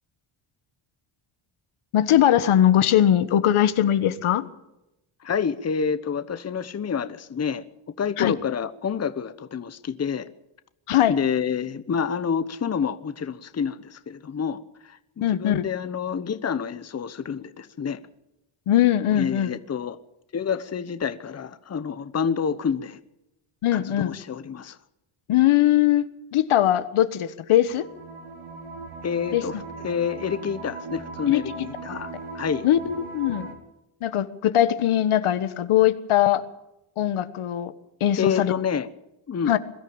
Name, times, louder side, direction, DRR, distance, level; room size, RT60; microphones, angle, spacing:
voice 1, 1.9-4.4 8.2-8.3 10.9-11.1 15.2-15.7 18.7-19.5 23.6-24.1 25.3-26.1 26.3-27.9 29.3-29.4 31.3-31.7 32.6-33.5 34.0-36.4 37.0-37.7 38.0-38.5 39.5-39.6, left 12 dB, 80° left, 12 dB, 1.5 m, -20 dB
voice 2, 5.2-7.6 8.0-10.3 11.1-18.0 19.1-20.0 20.3-23.0 23.7-24.8 29.0-32.6 38.2-38.9 39.3-39.5, left 6 dB, 30° left, 12 dB, 1.0 m, -28 dB
sound 1, 27.7-33.5, right 4 dB, 75° right, 4.4 m, -38 dB
22.0 x 13.5 x 8.8 m, 0.90 s
cardioid pair, 130°, 49 cm